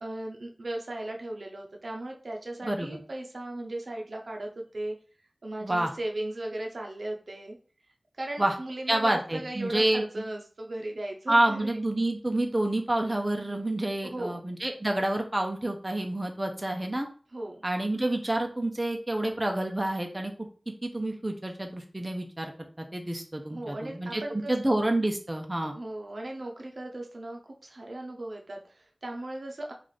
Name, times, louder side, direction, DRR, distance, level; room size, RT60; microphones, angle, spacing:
voice 1, 0.0-5.0 5.4-7.6 8.2-11.8 14.0-14.4 17.3-17.6 23.5-24.7 25.7-29.7, right 1 dB, 75° right, 1 dB, 0.6 m, -37 dB
voice 2, 2.6-3.0 5.6-5.9 8.4-8.5 8.9-10.2 11.3-17.1 17.6-20.3 20.8-25.7, right 1 dB, 25° right, 3 dB, 0.5 m, -28 dB
3.2 x 2.4 x 4.0 m, 0.40 s
wide cardioid pair, 55°, 0 cm